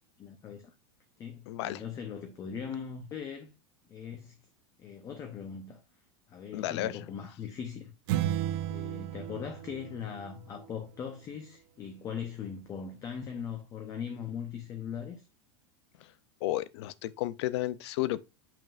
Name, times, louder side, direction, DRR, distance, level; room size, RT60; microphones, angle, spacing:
voice 1, 0.2-0.7 1.2-3.5 3.9-4.3 4.8-5.8 6.3-7.9 8.7-15.2, left 7 dB, 20° left, 0.7 m, -40 dB
voice 2, 1.5-1.8 6.5-7.1 16.4-18.2, left 15 dB, 60° left, 0.5 m, -32 dB
sound 1, 8.1-10.7, right 12 dB, 50° right, 0.6 m, -33 dB
7.1 x 5.8 x 2.5 m
supercardioid pair, 165°, 16 cm